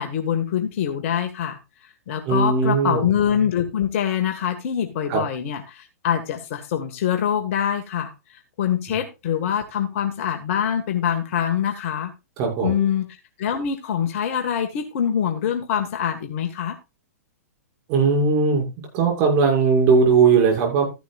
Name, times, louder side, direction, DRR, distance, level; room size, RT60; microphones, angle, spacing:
voice 1, 0.0-1.6 2.1-8.1 8.6-12.1 12.6-13.1 13.4-16.8, left 9 dB, 50° left, 5 dB, 1.8 m, -24 dB
voice 2, 2.3-3.0 5.1-5.2 12.4-12.9 17.9-18.7 18.9-20.9, right 5 dB, 40° right, 2 dB, 6.6 m, -18 dB
14.0 x 11.0 x 2.5 m, 0.26 s
hypercardioid pair, 115°, 9 cm